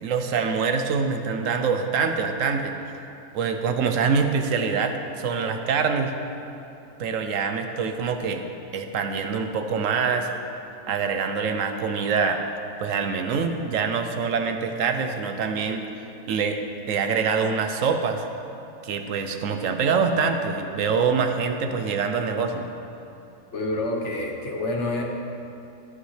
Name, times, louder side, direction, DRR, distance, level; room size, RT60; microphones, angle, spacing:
voice 1, 0.0-2.7 3.3-6.1 7.0-8.4 8.7-10.3 10.9-12.4 12.8-15.8 16.3-16.6 16.9-18.3 18.8-22.7, right 5 dB, 70° right, 6 dB, 1.0 m, -25 dB
voice 2, 23.5-25.0, left 2 dB, 55° left, 0 dB, 1.4 m, -27 dB
13.5 x 9.2 x 3.2 m, 2.7 s
omnidirectional pair, 1.4 m